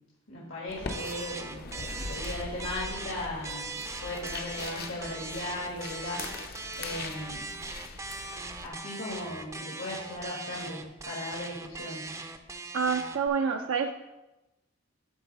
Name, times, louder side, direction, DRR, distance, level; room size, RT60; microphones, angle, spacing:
voice 1, 0.3-3.7 4.0-6.5 6.8-7.5 8.6-12.2, left 1 dB, 75° left, -5 dB, 1.6 m, -37 dB
sound 1, 0.7-8.7, left 3 dB, 50° left, 0.6 m, -41 dB
sound 2, 0.9-13.3, right 3 dB, 15° right, 0.4 m, -40 dB
voice 2, 12.7-13.9, right 5 dB, 75° right, 4 dB, 0.4 m, -27 dB
11.0 x 4.0 x 4.0 m, 1.0 s
head